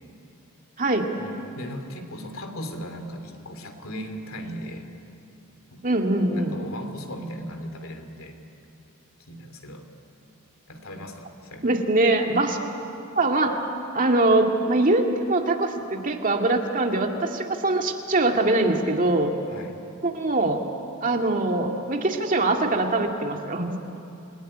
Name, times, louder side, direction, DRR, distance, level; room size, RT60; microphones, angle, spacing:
voice 1, 1.2-4.8 5.7-5.8 6.3-8.4 9.3-9.9 10.7-11.7 19.5-19.8, equal, 70° left, 5 dB, 3.0 m, -37 dB
voice 2, 5.8-6.6 11.6-12.6 13.2-13.6 13.9-19.3 20.0-20.6 21.0-23.8, right 2 dB, 40° right, 3 dB, 2.1 m, -22 dB
29.0 x 20.0 x 10.0 m, 2.7 s
head